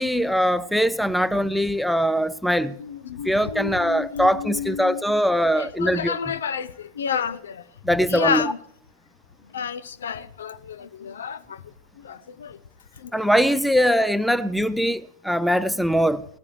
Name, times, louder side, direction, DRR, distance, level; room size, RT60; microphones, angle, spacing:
voice 1, 0.0-2.7 3.2-6.2 7.8-8.5 13.1-16.3, equal, ahead, 0.5 m, -22 dB
voice 2, 2.8-5.1 5.5-7.6 8.1-8.6 9.5-12.6 13.0-13.6, left 7 dB, 65° left, 0.7 m, -31 dB
20.0 x 14.5 x 3.2 m
figure-of-eight pair, 90°, 0 cm